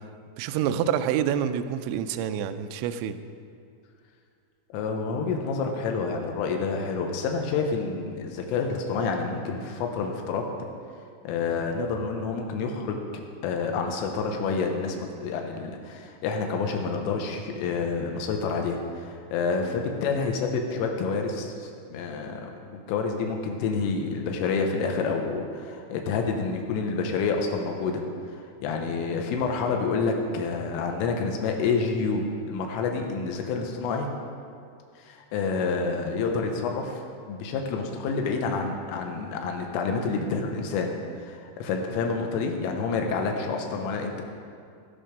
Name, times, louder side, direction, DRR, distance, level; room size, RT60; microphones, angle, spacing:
voice 1, 0.4-3.2, right 9 dB, 85° right, 9 dB, 2.6 m, -27 dB
voice 2, 4.7-10.5 11.3-13.0 13.4-34.1 35.0-37.0 37.3-44.2, left 4 dB, 85° left, 3 dB, 3.7 m, -28 dB
19.0 x 6.7 x 5.3 m, 2.4 s
omnidirectional pair, 5.8 m